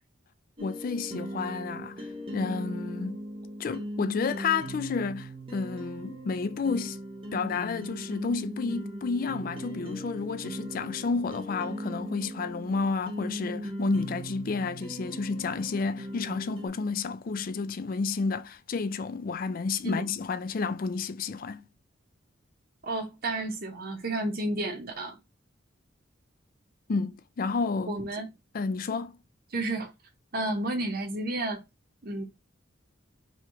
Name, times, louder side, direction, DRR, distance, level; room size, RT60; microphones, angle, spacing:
voice 1, 0.6-2.1 2.3-3.2 3.6-7.0 7.3-21.6 26.9-27.9 28.5-29.2, left 4 dB, 45° left, 0.4 m, -31 dB
sound 1, 0.6-16.7, equal, 25° right, 0.9 m, -39 dB
voice 2, 22.8-25.2 27.9-28.3 29.5-29.9 30.3-31.6 32.0-32.2, right 2 dB, 50° right, 0.9 m, -31 dB
3.2 x 3.1 x 4.6 m
head